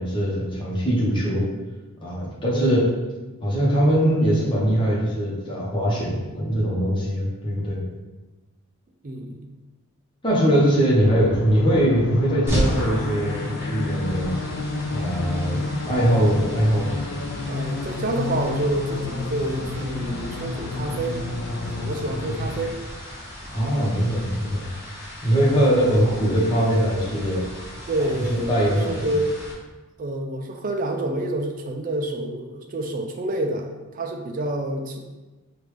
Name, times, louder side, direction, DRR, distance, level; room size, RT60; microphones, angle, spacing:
voice 1, 0.0-1.4 2.0-2.8 3.4-7.8 10.2-14.4 14.9-16.9 23.5-24.7 25.2-27.4 28.5-29.1, equal, 20° left, -6 dB, 0.9 m, -21 dB
voice 2, 9.0-9.5 17.5-21.2 21.6-22.8 27.9-29.4 30.0-35.0, right 1 dB, 40° right, 4 dB, 0.4 m, -28 dB
sound 1, 11.0-22.7, left 3 dB, 55° left, 0.4 m, -30 dB
sound 2, 12.5-29.5, equal, 10° right, 0.8 m, -35 dB
4.9 x 2.5 x 3.2 m, 1.2 s
head